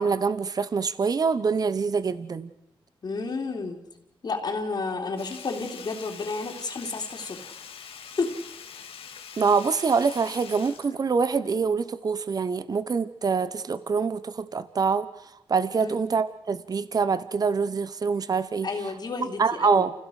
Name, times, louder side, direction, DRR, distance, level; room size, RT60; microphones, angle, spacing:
voice 1, 0.0-2.5 9.4-15.1 15.5-18.7 19.2-19.9, right 5 dB, 40° right, 14 dB, 1.0 m, -25 dB
voice 2, 3.0-3.8 4.2-7.5 8.2-8.3 15.8-16.0 18.6-19.8, left 4 dB, 45° left, 1 dB, 3.3 m, -31 dB
Sink (filling or washing), 5.2-11.7 12.0-12.1, left 7 dB, 70° left, 2.0 m, -44 dB
29.0 x 16.5 x 6.5 m, 0.93 s
cardioid pair, 110°, 10 cm